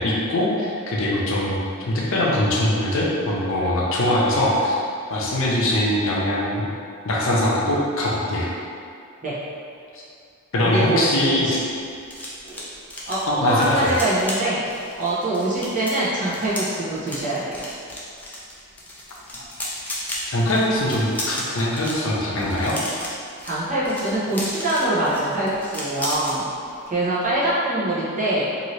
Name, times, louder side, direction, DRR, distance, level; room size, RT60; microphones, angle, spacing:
voice 1, 0.0-1.6 1.9-4.7 5.1-6.7 7.0-8.5 9.9-10.0 10.5-11.6 13.3-13.9 20.3-22.8, left 1 dB, 65° left, -4 dB, 0.6 m, -22 dB
voice 2, 10.6-11.6 12.4-12.6 13.0-14.6 15.0-17.7 23.4-26.5 26.9-28.5, right 1 dB, 40° right, -8 dB, 0.8 m, -24 dB
sound 1, 11.2-26.4 26.7-27.0 27.2-27.5, left 1 dB, 5° left, 0.4 m, -34 dB
2.7 x 2.7 x 3.1 m, 2.4 s
head